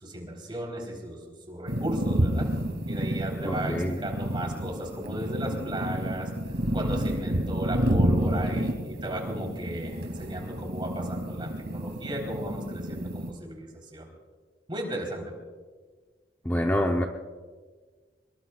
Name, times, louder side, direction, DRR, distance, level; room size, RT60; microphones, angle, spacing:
voice 1, 0.0-1.2 1.5-2.5 2.9-6.3 6.7-14.1 14.7-15.3, right 1 dB, 25° right, 0 dB, 3.8 m, -35 dB
sound 1, 1.7-13.3, right 1 dB, 65° right, 2.5 m, -29 dB
voice 2, 3.4-4.0 16.4-17.1, left 1 dB, 10° left, 2 dB, 0.8 m, -26 dB
26.0 x 22.0 x 2.4 m, 1.5 s
head